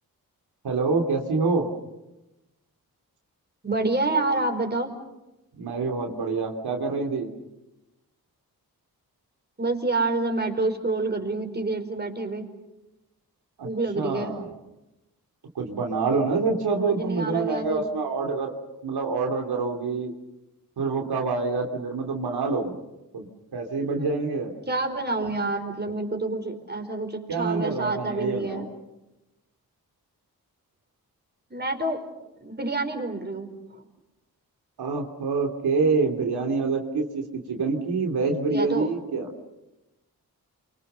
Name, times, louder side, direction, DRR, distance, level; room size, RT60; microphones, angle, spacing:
voice 1, 0.6-1.7 5.6-7.3 13.6-13.7 13.9-14.4 15.5-18.5 18.8-20.1 20.8-22.8 23.1-24.5 27.3-28.6 34.8-39.3, right 4 dB, 85° right, 2 dB, 3.1 m, -26 dB
voice 2, 3.6-4.9 9.6-12.5 13.6-14.4 16.8-17.9 24.7-28.6 31.5-32.1 32.4-33.5 38.5-38.9, right 2 dB, 25° right, 4 dB, 4.9 m, -28 dB
29.5 x 24.5 x 6.9 m, 0.97 s
cardioid pair, 65°, 38 cm